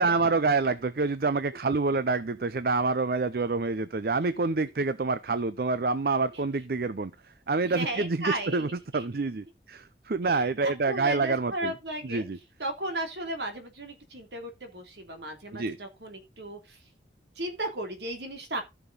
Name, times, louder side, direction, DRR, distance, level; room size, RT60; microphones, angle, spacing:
voice 1, 0.0-7.1 7.5-11.8 12.0-12.4 15.5-15.8, right 3 dB, 55° right, 0.5 m, -27 dB
voice 2, 7.7-9.1 10.2-12.2 12.6-16.8 17.4-18.6, right 1 dB, 70° right, 2.8 m, -35 dB
14.5 x 5.9 x 3.9 m
head